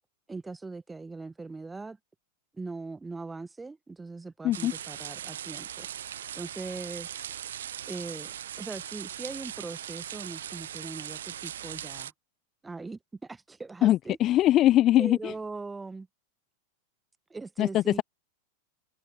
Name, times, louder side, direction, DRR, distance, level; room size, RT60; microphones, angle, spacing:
voice 1, 0.3-2.0 2.5-5.9 6.3-7.2 7.9-12.1 12.6-14.2 15.0-16.1 17.3-18.0, right 3 dB, 10° right, 1.8 m, -40 dB
sound 1, 4.5-12.1, right 10 dB, 65° right, 1.2 m, -39 dB
voice 2, 13.8-15.3 17.6-18.0, left 14 dB, 35° left, 0.6 m, -22 dB
figure-of-eight pair, 90°, 0 cm